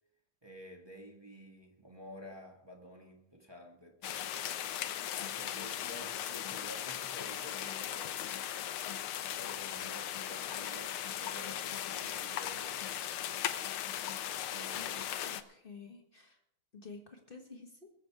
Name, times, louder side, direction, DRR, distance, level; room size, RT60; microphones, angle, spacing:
voice 1, 0.4-4.4 5.1-8.2 9.3-12.8 14.4-15.0, equal, 20° right, 0.7 m, -51 dB
sound 1, 4.0-15.4, left 11 dB, 90° left, 1.1 m, -38 dB
voice 2, 15.2-16.4 16.7-17.9, left 4 dB, 35° left, 0.8 m, -51 dB
21.5 x 8.0 x 4.7 m
omnidirectional pair, 3.4 m